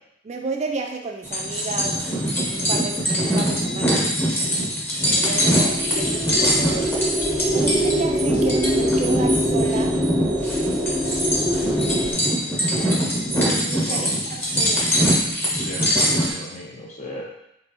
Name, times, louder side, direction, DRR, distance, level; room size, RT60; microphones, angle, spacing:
voice 1, 0.3-2.0 2.4-4.0 5.0-5.5 6.0-6.9 7.5-9.9 13.6-14.1 14.5-14.9, right 3 dB, 35° right, 3 dB, 0.3 m, -31 dB
sound 1, 1.2-16.3, equal, 10° left, 1.1 m, -23 dB
sound 2, 5.1-12.1, equal, 15° right, 0.7 m, -24 dB
voice 2, 15.6-17.2, left 1 dB, 40° left, -3 dB, 1.0 m, -35 dB
4.6 x 3.8 x 2.8 m, 0.80 s
head